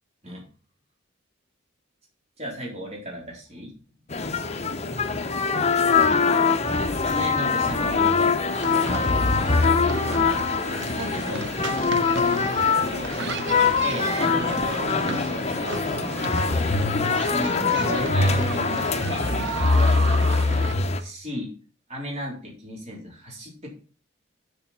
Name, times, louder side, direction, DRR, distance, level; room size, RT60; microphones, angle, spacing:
voice 1, 2.4-3.7 4.4-4.5 6.9-8.1 8.6-10.4 10.9-11.8 13.8-14.1 14.7-16.2 17.3-20.1 21.0-21.5 21.9-23.7, equal, 35° right, -2 dB, 3.6 m, -35 dB
sound 1, 4.1-21.0, left 4 dB, 35° left, 0.8 m, -23 dB
sound 2, 8.5-20.7, right 4 dB, 60° right, 0.9 m, -34 dB
7.0 x 6.9 x 5.6 m, 0.38 s
head